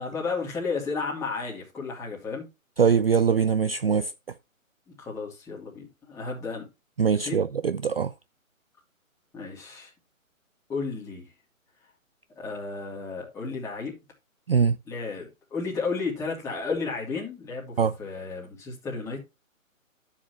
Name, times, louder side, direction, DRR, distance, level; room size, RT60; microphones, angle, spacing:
voice 1, 0.0-2.4 4.9-6.7 7.1-7.4 9.3-9.9 10.7-11.3 12.4-13.9 14.9-19.2, left 4 dB, 5° left, 2.8 m, -33 dB
voice 2, 2.8-4.1 7.0-8.1 14.5-14.8 17.8-17.9, right 6 dB, 45° right, 0.4 m, -22 dB
12.0 x 7.4 x 3.1 m
figure-of-eight pair, 155°, 42 cm